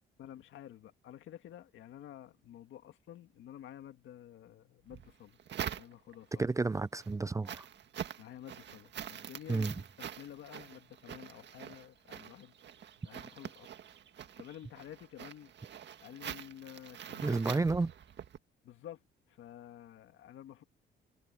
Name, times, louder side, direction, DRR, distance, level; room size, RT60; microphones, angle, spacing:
voice 1, 0.2-5.4 5.8-6.5 8.2-12.6 13.0-13.7 14.4-15.5 16.0-17.4 18.6-20.6, left 11 dB, 75° left, 2.1 m, -51 dB
sound 1, 4.9-6.3 6.8-18.4, right 9 dB, 60° right, 1.8 m, -45 dB
voice 2, 6.4-7.7 9.5-9.7 17.2-17.9, right 3 dB, 15° right, 0.5 m, -31 dB
cardioid pair, 90°, 20 cm